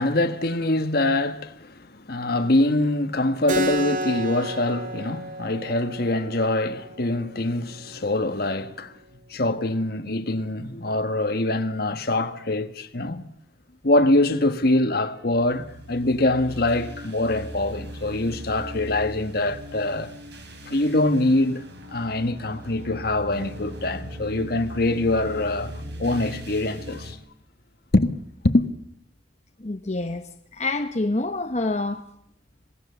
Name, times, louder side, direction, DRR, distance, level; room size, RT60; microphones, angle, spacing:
voice 1, 0.0-9.0 9.3-13.2 13.8-20.1 20.7-21.6 21.9-27.2 27.9-28.7, left 2 dB, 55° left, 1.4 m, -24 dB
Keyboard (musical), 3.5-8.6, right 1 dB, 45° right, 2.3 m, -33 dB
sound 1, 15.3-27.1, equal, 65° right, 4.2 m, -39 dB
voice 2, 29.6-32.0, left 2 dB, 40° left, 1.0 m, -27 dB
26.0 x 18.5 x 7.0 m
head